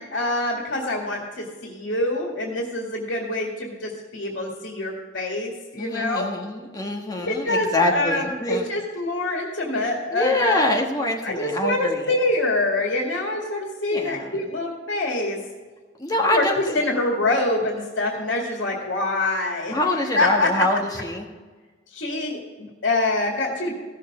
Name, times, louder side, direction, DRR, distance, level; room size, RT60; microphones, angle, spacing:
voice 1, 0.0-6.3 7.2-10.7 11.2-15.4 16.3-19.7 20.2-20.6 21.9-23.7, left 2 dB, 80° left, -1 dB, 2.1 m, -25 dB
voice 2, 5.8-8.6 10.1-12.1 13.9-14.4 16.0-16.8 19.7-21.3, left 1 dB, 20° left, 0 dB, 1.4 m, -25 dB
16.0 x 6.8 x 4.9 m, 1.4 s
head